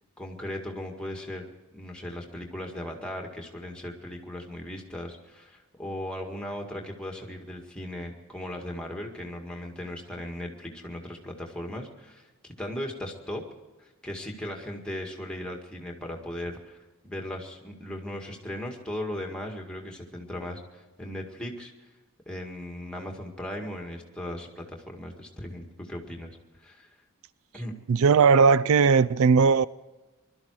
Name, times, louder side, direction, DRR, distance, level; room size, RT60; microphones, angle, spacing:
voice 1, 0.2-13.4 13.8-16.8 17.0-21.7 22.3-26.3 26.6-26.9 27.5-27.7, left 1 dB, 5° left, 1.9 m, -37 dB
voice 2, 27.9-29.7, right 5 dB, 80° right, 0.4 m, -18 dB
22.0 x 12.5 x 4.8 m
head